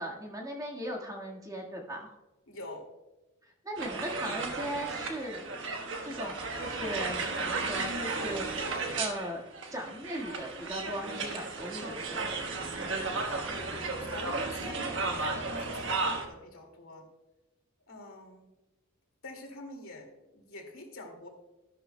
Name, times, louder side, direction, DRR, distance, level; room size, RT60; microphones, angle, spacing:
voice 1, 0.0-2.2 3.6-9.4 9.7-12.5, equal, 15° right, -1 dB, 1.6 m, -38 dB
voice 2, 2.5-2.8 14.0-17.1 17.9-18.5 19.2-21.3, left 1 dB, 70° left, 2 dB, 2.2 m, -46 dB
sound 1, 3.8-16.3, right 3 dB, 60° right, 1.3 m, -34 dB
12.0 x 11.5 x 2.2 m, 1.0 s
head